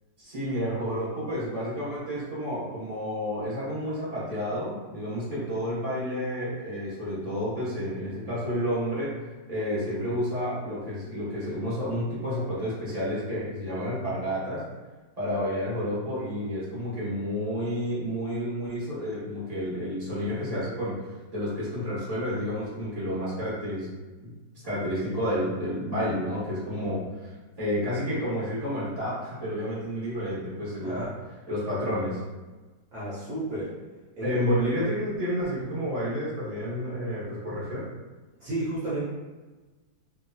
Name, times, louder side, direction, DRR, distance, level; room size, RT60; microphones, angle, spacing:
voice 1, 0.2-9.1 9.5-14.6 15.2-21.0 21.3-23.9 24.2-24.3 24.6-27.3 27.6-31.1 31.5-32.2 34.2-37.8, equal, 30° right, -9 dB, 0.7 m, -30 dB
voice 2, 32.9-33.7 34.2-34.3 38.4-39.0, right 1 dB, 60° right, -10 dB, 1.1 m, -32 dB
3.1 x 2.7 x 2.2 m, 1.2 s
omnidirectional pair, 2.1 m